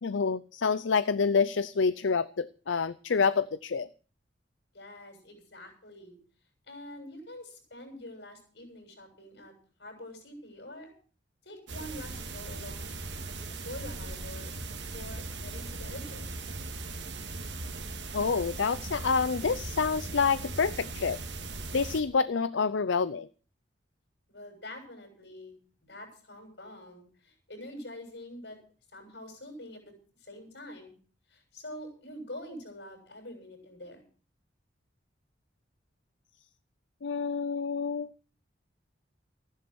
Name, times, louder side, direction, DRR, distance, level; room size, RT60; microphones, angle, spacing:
voice 1, 0.0-3.9 18.1-21.2 21.7-23.3 37.0-38.1, left 5 dB, 85° left, 15 dB, 0.6 m, -27 dB
voice 2, 4.7-6.2 6.7-9.5 9.8-10.9 11.4-14.5 14.9-16.2 24.3-25.6 25.9-28.6 28.9-29.9 30.2-31.0 31.3-34.0, left 1 dB, 70° left, 4 dB, 7.2 m, -45 dB
sound 1, 11.7-22.0, right 3 dB, 75° right, 2.2 m, -39 dB
15.0 x 11.0 x 6.2 m, 0.40 s
head